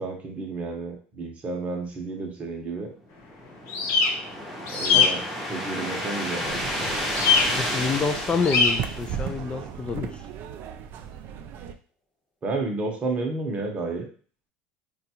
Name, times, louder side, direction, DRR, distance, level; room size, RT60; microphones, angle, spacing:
voice 1, 0.0-2.9 4.7-5.2 5.5-7.1 12.4-14.1, right 3 dB, 30° right, 1 dB, 0.8 m, -31 dB
sound 1, 3.1-9.7, equal, ahead, 0.8 m, -32 dB
sound 2, 3.7-4.1 4.7-5.1 7.1-7.4 8.4-8.7, left 6 dB, 60° left, 0.8 m, -20 dB
sound 3, 6.4-11.7, right 9 dB, 50° right, 0.3 m, -36 dB
voice 2, 7.6-10.2, left 5 dB, 20° left, 8 dB, 0.4 m, -27 dB
3.8 x 2.3 x 2.8 m, 0.43 s
supercardioid pair, 125°, 5 cm